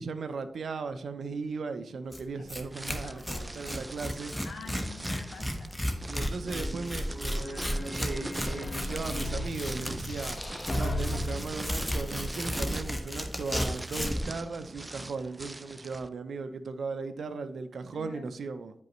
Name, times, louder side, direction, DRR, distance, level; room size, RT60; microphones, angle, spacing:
voice 1, 0.0-4.4 6.1-10.4 10.7-18.7, right 4 dB, 75° right, 0.6 m, -37 dB
Tearing, 2.1-2.2 2.5-2.6 2.9-14.3, equal, 5° left, 1.1 m, -34 dB
sound 1, 2.7-16.1, right 2 dB, 20° right, 0.4 m, -42 dB
voice 2, 3.0-3.6 4.4-5.9 6.2-6.8 17.9-18.4, left 5 dB, 85° left, 1.2 m, -47 dB
sound 2, 6.4-11.4, left 1 dB, 35° left, 1.2 m, -36 dB
9.7 x 5.4 x 3.1 m
cardioid pair, 80°, 0 cm